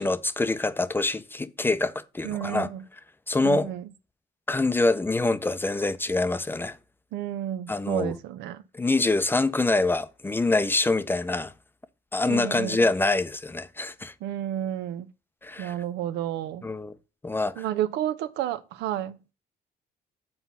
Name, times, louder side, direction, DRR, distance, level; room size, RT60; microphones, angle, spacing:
voice 1, 0.0-2.7 3.3-3.7 4.5-6.8 7.7-8.1 8.7-11.5 12.1-14.1 15.4-15.7 16.6-16.9 17.2-17.6, left 2 dB, 10° left, 0.5 m, -25 dB
voice 2, 2.2-2.8 3.4-3.8 7.1-8.6 12.3-12.9 14.2-15.1 15.6-16.7 17.6-19.2, right 11 dB, 85° right, 0.7 m, -31 dB
7.9 x 4.3 x 5.5 m
cardioid pair, 110°, 17 cm